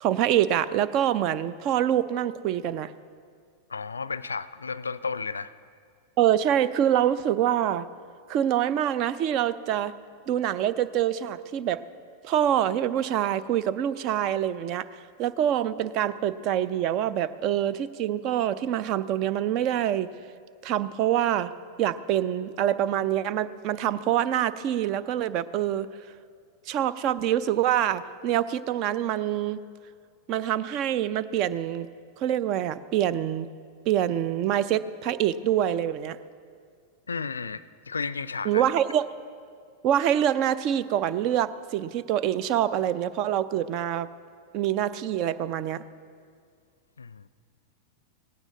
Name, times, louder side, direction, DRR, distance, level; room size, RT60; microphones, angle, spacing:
voice 1, 0.0-2.9 6.2-7.9 8.3-9.9 10.3-11.8 12.2-20.1 20.6-21.5 21.8-25.9 26.7-29.6 30.3-31.9 32.2-33.5 33.9-36.2 38.4-39.1 39.8-44.1 44.5-45.8, right 11 dB, 40° right, 16 dB, 0.5 m, -25 dB
voice 2, 3.7-5.5 37.1-38.6 47.0-47.2, left 5 dB, 75° left, 17 dB, 0.4 m, -33 dB
18.0 x 16.0 x 3.9 m, 2.2 s
figure-of-eight pair, 90°, 0 cm